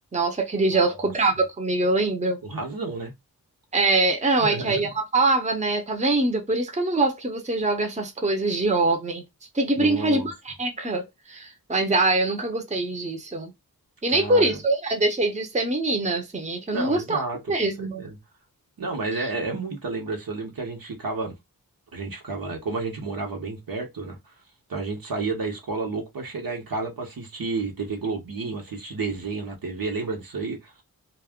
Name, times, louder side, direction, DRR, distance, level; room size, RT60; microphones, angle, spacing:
voice 1, 0.1-2.4 3.7-9.2 9.5-13.5 14.0-17.2 17.5-18.1, right 2 dB, 20° right, 0.8 m, -23 dB
voice 2, 0.7-1.1 2.4-3.1 4.4-4.9 9.8-10.3 14.1-14.6 16.7-17.4 17.8-18.2 18.8-21.3 21.9-24.2 24.7-30.7, right 3 dB, 65° right, 1.0 m, -31 dB
2.3 x 2.1 x 3.5 m
cardioid pair, 60°, 38 cm